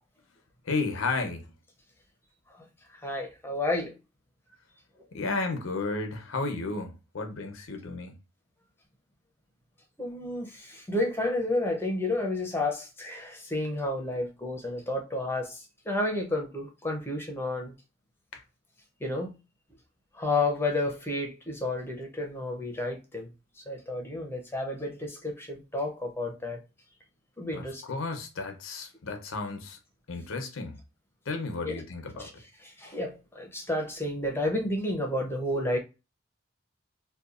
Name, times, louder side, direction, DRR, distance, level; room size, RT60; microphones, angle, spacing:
voice 1, 0.6-1.5 5.1-8.2 18.3-18.4 27.5-29.8 30.1-30.8 31.3-32.3, left 3 dB, 90° left, 0.6 m, -33 dB
voice 2, 3.0-3.9 10.0-17.7 19.0-19.3 20.1-23.3 23.7-26.6 27.4-27.8 31.6-31.8 32.2-32.3 32.6-35.8, left 2 dB, 10° left, 0.5 m, -31 dB
2.8 x 2.2 x 2.4 m
head